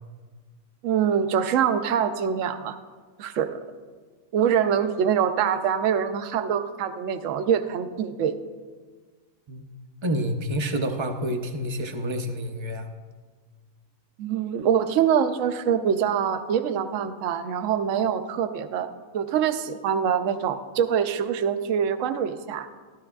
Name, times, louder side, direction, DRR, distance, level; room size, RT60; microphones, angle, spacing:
voice 1, 0.8-2.8 3.2-3.6 4.3-8.3 14.2-18.9 19.1-22.7, right 8 dB, 70° right, 10 dB, 0.9 m, -24 dB
voice 2, 10.0-12.9, equal, 35° right, 6 dB, 0.4 m, -28 dB
13.5 x 13.0 x 2.3 m, 1.5 s
omnidirectional pair, 1.5 m